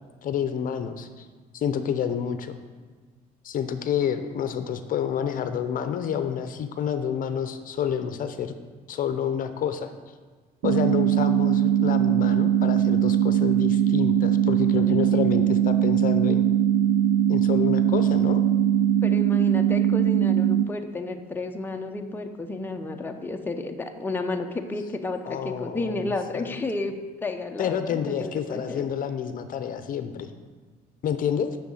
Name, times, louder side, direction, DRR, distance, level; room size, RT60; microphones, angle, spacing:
voice 1, 0.2-1.3 1.5-2.6 3.4-8.6 8.9-9.9 10.6-16.5 17.3-18.4 25.2-26.6 27.6-30.3 31.0-31.6, left 8 dB, 55° left, 9 dB, 0.7 m, -29 dB
sound 1, 10.6-20.6, right 10 dB, 90° right, 0.5 m, -21 dB
voice 2, 14.8-15.3 19.0-28.9, left 2 dB, 10° left, 4 dB, 0.7 m, -32 dB
6.8 x 6.4 x 7.7 m, 1.4 s
cardioid pair, 110°, 17 cm